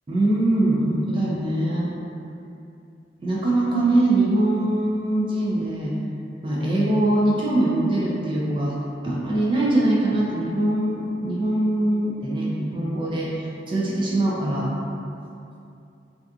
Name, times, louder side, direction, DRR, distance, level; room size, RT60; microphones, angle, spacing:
voice 1, 0.1-1.9 3.2-6.0 6.4-8.8 9.0-14.7, right 1 dB, 30° right, -5 dB, 0.4 m, -22 dB
2.7 x 2.4 x 2.3 m, 2.6 s
head